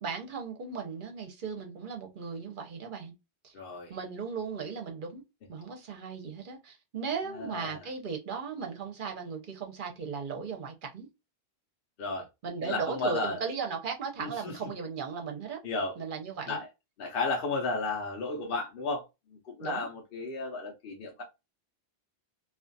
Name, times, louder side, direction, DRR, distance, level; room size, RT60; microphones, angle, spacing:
voice 1, 0.0-3.1 3.4-3.5 3.9-5.2 5.5-11.1 12.4-15.6 16.0-16.6 19.6-19.9, right 5 dB, 55° right, 0.8 m, -37 dB
voice 2, 3.5-4.0 7.4-7.8 12.0-12.3 12.6-13.4 14.2-14.7 15.6-15.9 16.5-16.7 17.0-19.0 19.4-21.2, left 3 dB, 60° left, 0.8 m, -33 dB
2.4 x 2.3 x 2.6 m
omnidirectional pair, 1.1 m